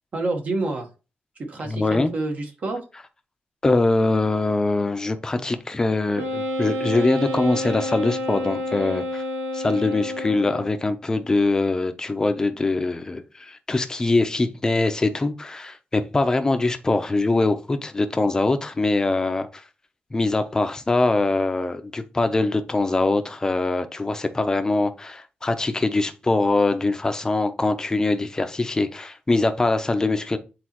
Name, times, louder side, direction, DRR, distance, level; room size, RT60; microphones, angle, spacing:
voice 1, 0.1-0.9 1.4-2.8, right 2 dB, 45° right, 1.3 m, -28 dB
voice 2, 1.7-2.1 3.6-9.2 9.5-19.6 20.1-30.4, left 2 dB, 20° left, 0.6 m, -23 dB
Wind instrument woodwind instrument, 6.1-10.8, left 1 dB, 75° right, 1.9 m, -29 dB
8.4 x 4.1 x 3.0 m
wide cardioid pair, 175°, 4 cm